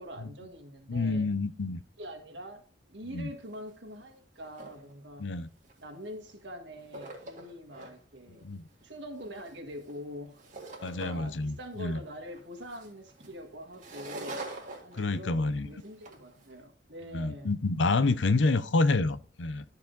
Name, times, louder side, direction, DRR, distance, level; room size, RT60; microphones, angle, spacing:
voice 1, 0.0-1.3 2.0-5.3 5.8-8.4 8.8-10.4 10.8-14.4 14.8-17.6, equal, 70° right, 1.7 m, -44 dB
voice 2, 0.9-1.8 3.1-3.3 5.2-5.5 8.4-8.6 10.8-12.0 14.9-15.7 17.1-19.6, left 3 dB, 85° left, 0.7 m, -28 dB
sound 1, 3.1-3.2 3.4-3.7 4.1-4.9 5.6-6.4 6.7-7.9 8.4-11.4 11.7-16.5, right 2 dB, 45° right, 2.0 m, -45 dB
13.0 x 4.9 x 3.9 m
head